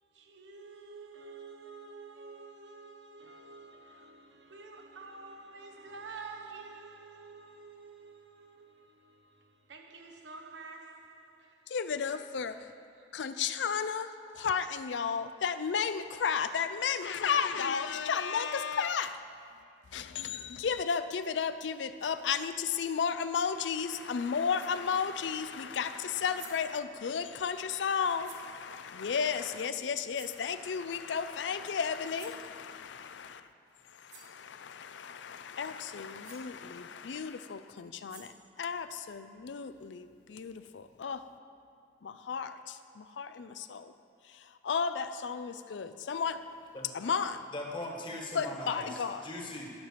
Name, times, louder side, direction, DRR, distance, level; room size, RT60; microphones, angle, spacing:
voice 1, 0.0-11.7 12.9-13.2, right 4 dB, 90° right, 1.0 m, -49 dB
voice 2, 11.7-12.7 13.1-19.2 19.9-33.5 33.8-41.3 42.0-43.9 44.2-46.4 46.9-47.4 48.3-49.3, left 6 dB, 80° left, 0.5 m, -33 dB
sound 1, 24.5-24.8 26.0-26.1 26.3-26.8 28.2-28.5 30.1-30.5 32.1-32.5 33.7-33.8 34.1-34.4 35.9-36.0 36.2-36.5 37.9-38.5, right 7 dB, 65° right, 1.1 m, -52 dB
voice 3, 47.5-49.7, left 1 dB, 30° left, 1.4 m, -40 dB
12.0 x 5.8 x 6.8 m
head